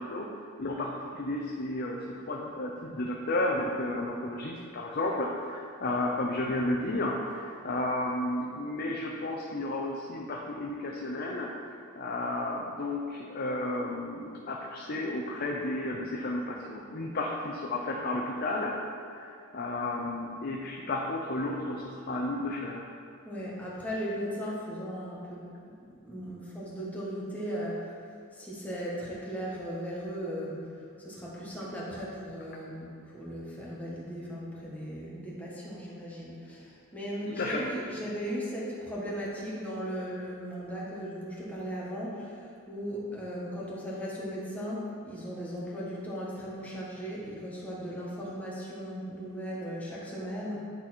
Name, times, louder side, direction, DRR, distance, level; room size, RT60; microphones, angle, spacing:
voice 1, 0.0-11.5 12.0-18.7 19.1-22.9 37.3-37.7, left 2 dB, 45° left, -1 dB, 0.6 m, -32 dB
voice 2, 23.2-25.5 26.0-27.9 28.3-30.6 31.0-50.6, equal, 5° left, -6 dB, 1.4 m, -37 dB
10.0 x 4.2 x 4.4 m, 2.4 s
head